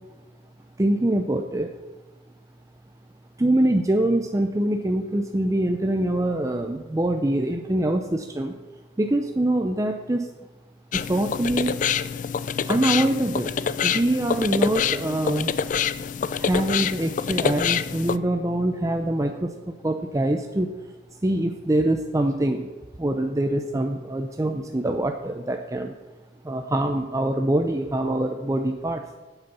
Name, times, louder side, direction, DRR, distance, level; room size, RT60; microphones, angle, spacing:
voice 1, 0.8-1.7 3.4-8.6 9.0-10.3 10.9-11.7 12.7-13.5 13.8-15.5 16.3-20.7 21.2-22.7 23.0-25.9 26.4-29.0, right 1 dB, 20° right, 4 dB, 0.5 m, -24 dB
sound 1, 10.9-18.2, left 7 dB, 45° left, 0.4 m, -26 dB
9.2 x 8.0 x 6.9 m, 1.2 s
head